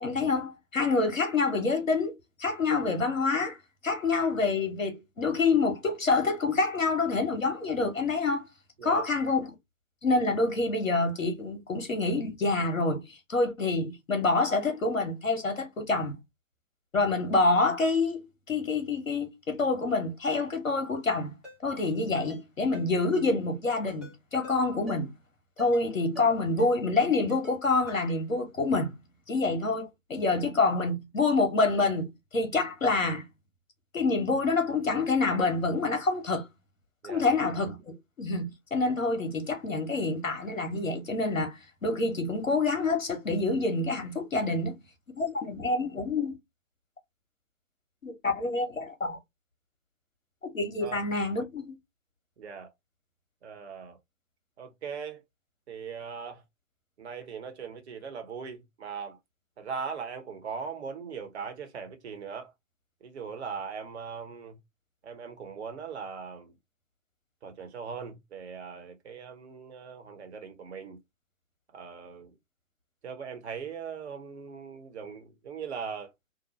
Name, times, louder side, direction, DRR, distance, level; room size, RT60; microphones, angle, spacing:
voice 1, 0.0-3.6 3.8-8.4 8.8-9.5 10.0-16.1 16.9-18.2 18.5-21.4 21.6-25.1 25.6-28.9 29.3-33.3 33.9-36.5 37.0-44.8 45.2-46.4 48.0-49.2 50.4-51.7, left 3 dB, 80° left, 1.0 m, -27 dB
Ringtone, 21.4-21.6 22.1-22.4 22.7-22.9 23.1-23.3 23.9-24.1 24.4-24.6 24.9-25.0 25.6-25.9 26.1-26.3 26.6-26.7 27.3-27.6 27.9-28.0, left 3 dB, ahead, 0.7 m, -46 dB
voice 2, 52.4-52.7 53.4-54.0 54.6-55.2 55.7-56.4 57.0-59.2 59.6-62.5 63.0-64.6 65.0-66.5 67.4-71.0 71.7-72.3 73.0-76.1, right 6 dB, 55° right, 0.9 m, -40 dB
2.8 x 2.1 x 2.9 m
figure-of-eight pair, 130°, 39 cm